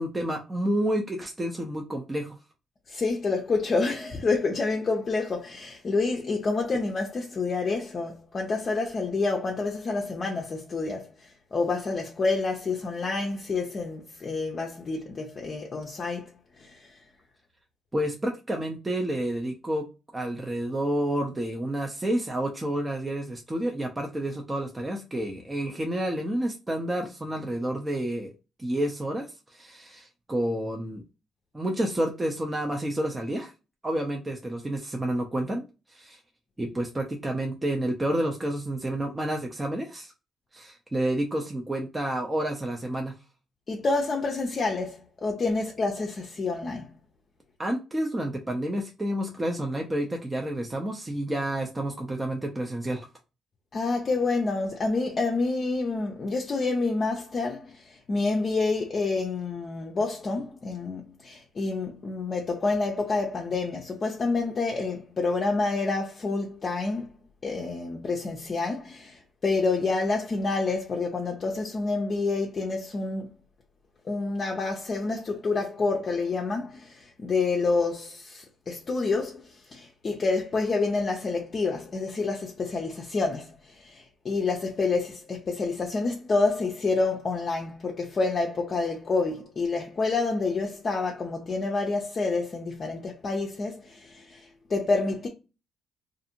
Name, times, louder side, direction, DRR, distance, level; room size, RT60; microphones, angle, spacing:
voice 1, 0.0-2.4 17.9-19.8 20.1-28.3 28.6-31.0 31.5-33.5 33.8-36.2 36.6-40.1 40.5-43.1 47.6-53.1, right 1 dB, 20° right, 0.5 m, -29 dB
voice 2, 2.9-11.1 11.5-16.3 16.6-16.9 43.7-46.9 53.7-67.1 67.4-73.3 74.1-95.3, left 3 dB, 40° left, 0.5 m, -28 dB
2.5 x 2.5 x 2.8 m
cardioid pair, 90°, 0 cm